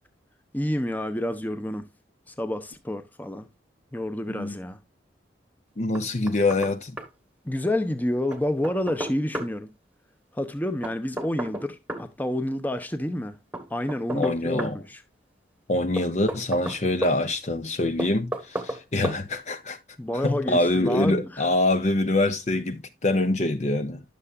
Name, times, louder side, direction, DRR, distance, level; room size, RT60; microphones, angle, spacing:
voice 1, 0.5-1.8 2.4-3.5 3.9-4.8 7.4-9.7 10.4-13.4 13.7-15.0 20.0-21.5, left 1 dB, 10° left, 0.9 m, -29 dB
voice 2, 4.3-4.6 5.8-7.0 14.1-14.8 15.7-19.8 20.1-24.0, left 2 dB, 40° left, 0.7 m, -25 dB
Knock, 6.0-6.7 7.0-7.1 8.3-9.5 10.8-12.1 13.5-14.8 16.0-17.2 18.0-18.8 19.0-19.2, equal, 5° right, 1.3 m, -33 dB
11.0 x 6.8 x 2.3 m
head